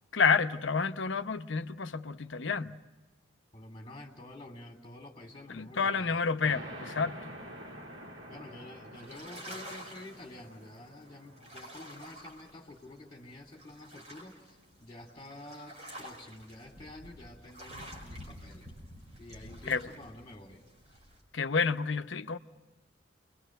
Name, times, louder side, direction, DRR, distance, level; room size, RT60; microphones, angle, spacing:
voice 1, 0.1-2.8 5.5-7.4 19.7-19.9 21.3-22.4, left 5 dB, 80° left, 0.9 m, -29 dB
voice 2, 3.5-6.2 8.3-18.7 19.2-20.6, left 1 dB, 25° left, 3.0 m, -49 dB
sound 1, 6.4-13.6, equal, 85° right, 2.2 m, -48 dB
sound 2, 8.9-21.2, equal, 35° right, 5.5 m, -49 dB
29.0 x 22.5 x 6.5 m
head